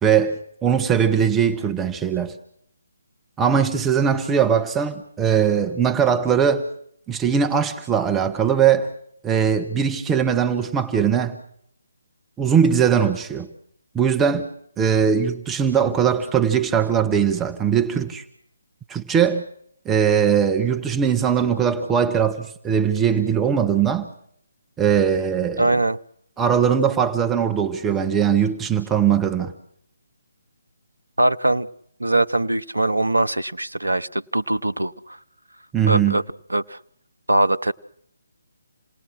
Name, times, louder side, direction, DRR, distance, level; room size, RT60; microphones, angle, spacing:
voice 1, 0.0-2.3 3.4-6.6 7.1-8.9 9.2-11.4 12.4-13.5 13.9-14.5 14.8-18.2 18.9-19.4 19.8-24.1 24.8-25.7 26.4-29.5 35.7-36.2, right 7 dB, 10° right, 1.3 m, -20 dB
voice 2, 25.6-26.0 31.2-31.7 32.0-35.2 35.9-36.2 36.5-36.8 37.3-37.7, right 2 dB, 75° right, 0.9 m, -21 dB
28.5 x 19.0 x 6.4 m
figure-of-eight pair, 145°, 0 cm